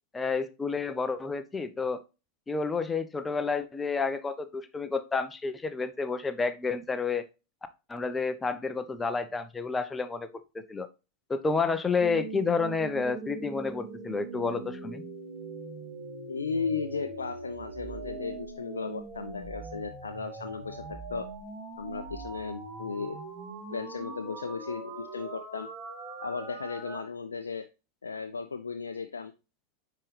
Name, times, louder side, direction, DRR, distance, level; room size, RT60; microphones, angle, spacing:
voice 1, 0.1-2.0 2.5-7.2 7.9-10.9 11.3-15.0, left 4 dB, 15° left, 11 dB, 0.7 m, -30 dB
sound 1, 12.0-27.0, right 3 dB, 30° right, 2.4 m, -41 dB
voice 2, 16.3-21.3 21.8-23.2 23.7-25.7 26.2-27.7 28.0-29.3, left 5 dB, 75° left, 6 dB, 0.5 m, -35 dB
9.9 x 3.8 x 3.2 m, 0.29 s
figure-of-eight pair, 90°, 0 cm